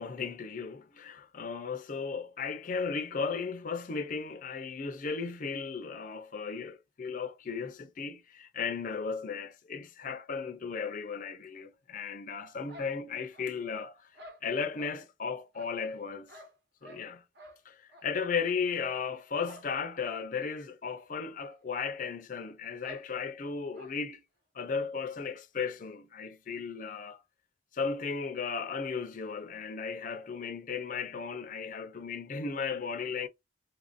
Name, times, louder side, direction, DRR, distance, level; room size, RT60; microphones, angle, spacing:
voice 1, 0.0-14.1 14.4-16.3 16.8-17.2 17.7-24.2 24.5-27.2 27.7-33.3, left 5 dB, 45° left, 0.5 m, -35 dB
sound 1, 12.7-13.7 14.1-15.0 15.5-17.1 17.4-17.6 17.9-18.1 18.4-18.6 19.4-19.7 20.0-20.1 20.5-20.6 21.4-21.5 21.8-21.9 22.8-23.1 23.7-24.0, right 1 dB, 60° right, 1.0 m, -52 dB
3.7 x 2.5 x 2.4 m
head